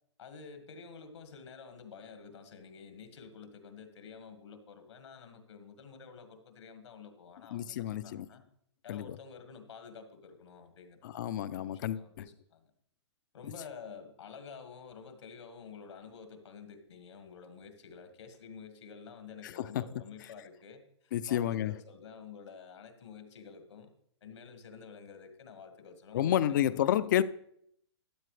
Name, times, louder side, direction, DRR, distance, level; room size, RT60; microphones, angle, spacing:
voice 1, 0.2-8.4 8.8-11.2 11.5-12.7 13.3-23.9 24.2-27.2, left 6 dB, 70° left, 1.7 m, -50 dB
voice 2, 7.5-8.3 8.9-9.2 11.0-12.2 19.4-19.8 21.1-21.8 26.1-27.2, left 11 dB, 40° left, 0.4 m, -30 dB
12.5 x 9.3 x 3.2 m
hypercardioid pair, 155°, 15 cm